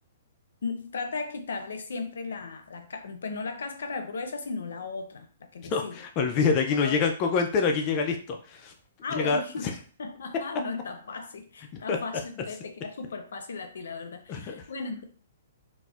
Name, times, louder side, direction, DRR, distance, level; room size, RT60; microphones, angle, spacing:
voice 1, 0.6-6.0 6.7-7.0 9.0-9.7 10.0-15.0, left 4 dB, 85° left, 7 dB, 0.6 m, -36 dB
voice 2, 5.6-8.7 9.2-9.4 11.7-12.0 14.3-14.6, left 5 dB, 25° left, 3 dB, 0.3 m, -26 dB
4.1 x 2.0 x 2.3 m, 0.43 s
hypercardioid pair, 165°, 0 cm